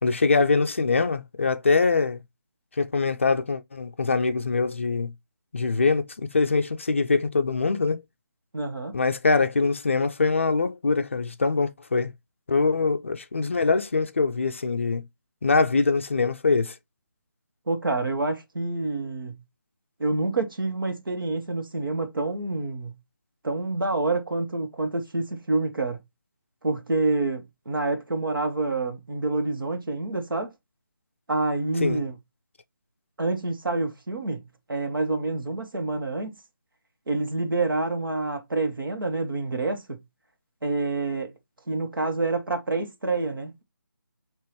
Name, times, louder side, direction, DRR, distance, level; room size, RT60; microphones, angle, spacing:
voice 1, 0.0-2.2 2.8-5.1 5.5-8.0 8.9-12.1 12.5-15.0 15.4-16.7 31.8-32.0, left 4 dB, 35° left, 0.4 m, -23 dB
voice 2, 8.5-9.0 17.7-19.4 20.0-22.9 23.4-26.0 26.6-30.5 31.3-32.2 33.2-36.4 37.1-40.0 40.6-41.3 41.7-43.6, right 3 dB, 90° right, 1.5 m, -27 dB
5.1 x 3.0 x 2.9 m
figure-of-eight pair, 175°, 11 cm